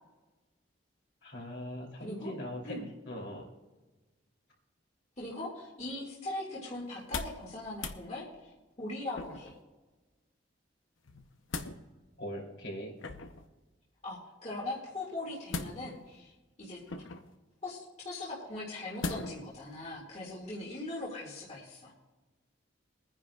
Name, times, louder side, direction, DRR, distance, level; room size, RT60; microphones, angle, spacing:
voice 1, 1.2-2.8 3.0-3.5 12.2-12.9, equal, 65° left, -2 dB, 3.1 m, -40 dB
voice 2, 2.0-2.3 2.6-2.9 5.2-8.5 8.8-9.5 14.0-16.3 16.6-16.8 17.6-21.9, left 2 dB, 35° left, -5 dB, 2.0 m, -40 dB
sound 1, 6.9-7.5 7.7-8.0 9.1-9.6 11.1-11.8 13.0-13.5 15.5-16.1 16.9-17.4 19.0-19.5 19.9-20.0, left 3 dB, 90° left, 0.8 m, -39 dB
23.0 x 9.9 x 2.4 m, 1.2 s
head